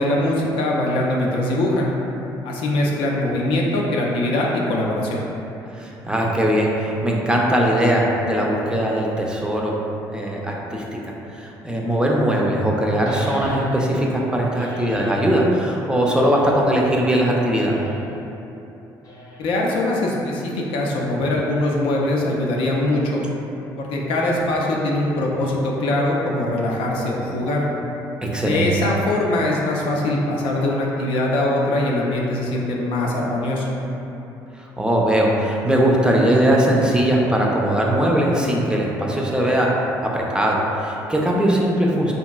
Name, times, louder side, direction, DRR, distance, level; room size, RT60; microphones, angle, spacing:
voice 1, 0.0-1.9 2.4-5.2 19.4-23.2 23.8-27.7 28.4-33.7, left 1 dB, 70° left, -2 dB, 0.4 m, -22 dB
voice 2, 5.7-9.8 10.1-10.8 11.4-17.8 28.2-28.7 34.8-42.1, right 1 dB, 10° right, -2 dB, 0.4 m, -20 dB
sound 1, 13.0-14.0 14.5-15.2 16.0-16.8 17.5-18.1 19.0-19.7, left 1 dB, 40° left, 0.7 m, -36 dB
2.9 x 2.6 x 2.3 m, 3.0 s
supercardioid pair, 65°, 9 cm